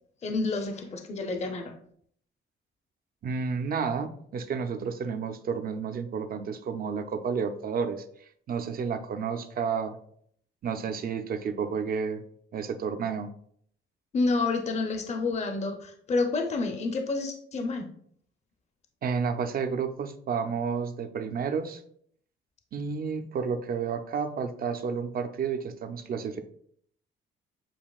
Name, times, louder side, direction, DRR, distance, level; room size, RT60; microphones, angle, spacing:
voice 1, 0.2-1.7 14.1-17.9, left 3 dB, 35° left, 4 dB, 0.6 m, -29 dB
voice 2, 3.2-10.0 10.6-12.2 12.5-13.3 19.0-21.8 22.7-26.4, right 6 dB, 50° right, 8 dB, 0.5 m, -31 dB
7.1 x 2.8 x 2.4 m, 0.64 s
cardioid pair, 90°, 20 cm